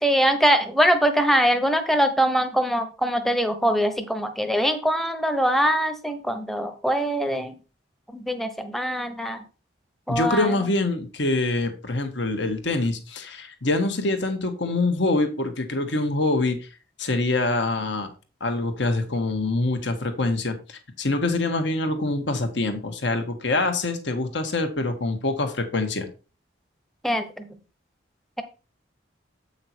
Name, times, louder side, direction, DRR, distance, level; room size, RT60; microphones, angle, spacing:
voice 1, 0.0-7.6 8.1-9.4 10.1-10.5 27.0-27.4, equal, ahead, 8 dB, 0.9 m, -23 dB
voice 2, 10.1-16.7 17.0-18.1 18.4-26.1, left 2 dB, 65° left, 6 dB, 1.5 m, -25 dB
8.2 x 5.8 x 4.5 m, 0.33 s
head